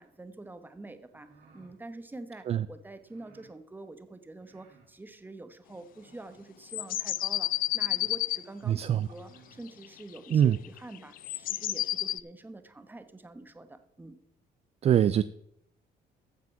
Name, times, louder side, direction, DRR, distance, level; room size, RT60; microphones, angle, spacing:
voice 1, 0.0-14.2, right 2 dB, 10° right, 10 dB, 1.1 m, -46 dB
sound 1, 1.0-1.8 3.0-3.5 4.4-4.9 5.9-6.5 7.2-7.3 7.6-8.2 9.0-9.6, right 5 dB, 85° right, 3.0 m, -60 dB
sound 2, 6.7-8.4 9.8-12.2, left 14 dB, 55° left, 0.4 m, -30 dB
voice 2, 8.7-9.1 10.3-10.6 14.8-15.2, right 10 dB, 40° right, 15 dB, 0.4 m, -23 dB
15.0 x 6.0 x 5.9 m, 0.74 s
cardioid pair, 110°, 17 cm